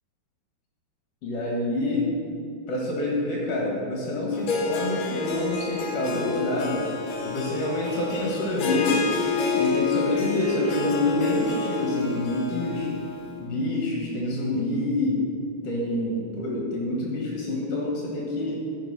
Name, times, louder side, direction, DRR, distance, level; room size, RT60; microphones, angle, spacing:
voice 1, 1.2-2.1 2.7-6.9 7.2-9.1 9.5-12.9 13.4-15.2 15.6-18.6, left 2 dB, 50° left, -3 dB, 2.1 m, -26 dB
Harp, 4.3-13.3, left 5 dB, 65° left, 1.7 m, -30 dB
14.5 x 6.7 x 5.7 m, 2.6 s
omnidirectional pair, 4.7 m